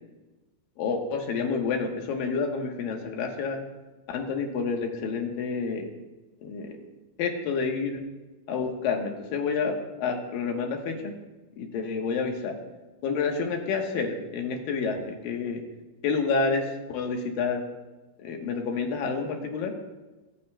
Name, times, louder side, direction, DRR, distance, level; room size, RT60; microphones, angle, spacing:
voice 1, 0.8-3.6 4.1-5.9 6.4-6.8 7.2-8.0 8.5-11.1 11.6-12.6 13.0-15.6 16.0-17.6 18.2-19.7, left 5 dB, 70° left, 3 dB, 2.6 m, -29 dB
24.0 x 9.3 x 2.2 m, 1.1 s
omnidirectional pair, 4.6 m